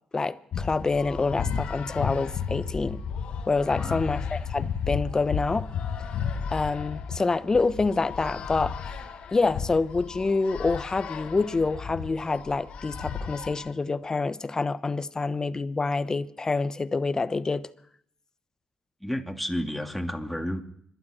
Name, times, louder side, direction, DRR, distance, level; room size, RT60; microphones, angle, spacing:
voice 1, 0.1-3.0 3.5-5.7 6.5-8.8 9.3-17.6, left 3 dB, 30° left, 0.9 m, -27 dB
sound 1, 0.5-13.7, left 6 dB, 70° left, 1.4 m, -33 dB
voice 2, 19.0-20.6, equal, ahead, 2.4 m, -31 dB
26.5 x 11.5 x 4.3 m
supercardioid pair, 60°, 2 cm